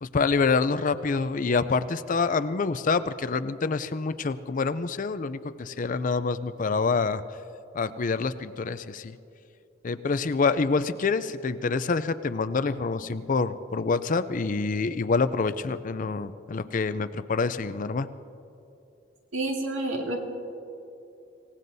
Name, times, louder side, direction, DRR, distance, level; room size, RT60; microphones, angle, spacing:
voice 1, 0.0-7.2 7.7-9.1 9.8-18.1, left 4 dB, 40° left, 13 dB, 0.5 m, -26 dB
voice 2, 19.3-20.2, right 2 dB, 80° right, 0 dB, 2.3 m, -29 dB
26.0 x 17.5 x 2.7 m, 2.8 s
head